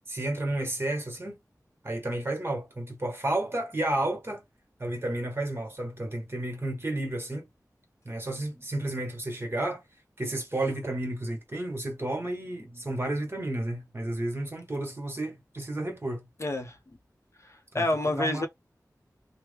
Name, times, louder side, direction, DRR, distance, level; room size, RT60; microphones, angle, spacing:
voice 1, 0.1-1.4 1.8-4.4 4.8-7.5 8.0-9.8 10.2-16.3 17.7-17.8 18.2-18.5, right 1 dB, 35° right, 1.2 m, -31 dB
voice 2, 16.4-16.8 17.5-18.5, left 1 dB, 45° left, 0.6 m, -28 dB
3.0 x 2.0 x 3.4 m
wide cardioid pair, 65°, 7 cm